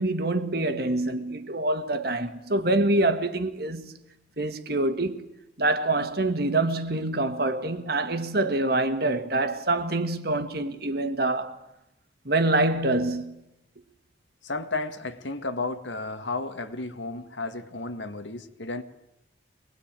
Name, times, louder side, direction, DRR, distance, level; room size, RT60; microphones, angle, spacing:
voice 1, 0.0-4.0 4.4-5.2 5.6-11.6 12.3-13.3, right 2 dB, 55° right, 1.8 m, -25 dB
voice 2, 14.4-18.8, left 3 dB, 80° left, 1.9 m, -33 dB
25.0 x 21.0 x 9.0 m
head